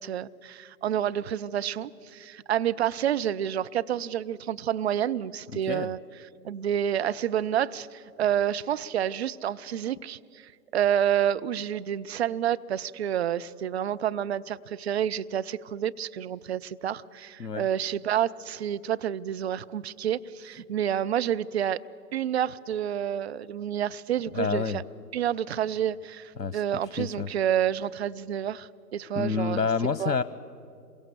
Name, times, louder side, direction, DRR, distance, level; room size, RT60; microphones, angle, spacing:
voice 1, 0.0-6.0 6.4-21.8 22.1-24.8 25.1-29.6 30.0-30.1, right 10 dB, 45° right, 13 dB, 0.5 m, -29 dB
voice 2, 5.5-5.9 17.4-17.7 24.3-24.8 26.4-26.6 27.0-27.3 29.2-30.2, left 5 dB, 85° left, 14 dB, 0.9 m, -28 dB
27.0 x 23.0 x 7.0 m, 2.5 s
figure-of-eight pair, 120°, 49 cm